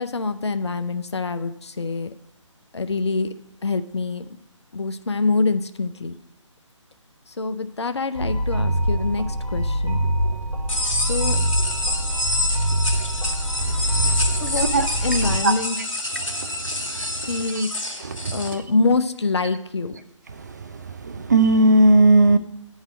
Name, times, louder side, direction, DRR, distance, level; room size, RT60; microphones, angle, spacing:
voice 1, 0.0-2.1 2.7-3.3 3.6-4.4 4.7-6.2 7.3-10.0 10.9-11.4 14.4-14.7 15.0-15.8 17.3-17.7 18.3-20.0, left 3 dB, 60° left, 10 dB, 0.5 m, -25 dB
sound 1, 8.1-15.4, right 1 dB, 75° right, 1.1 m, -24 dB
sound 2, 10.7-18.5, left 2 dB, 85° left, 1.5 m, -27 dB
voice 2, 21.1-22.4, right 2 dB, 35° right, 9 dB, 0.4 m, -16 dB
10.0 x 4.0 x 6.2 m, 0.86 s
figure-of-eight pair, 145°, 16 cm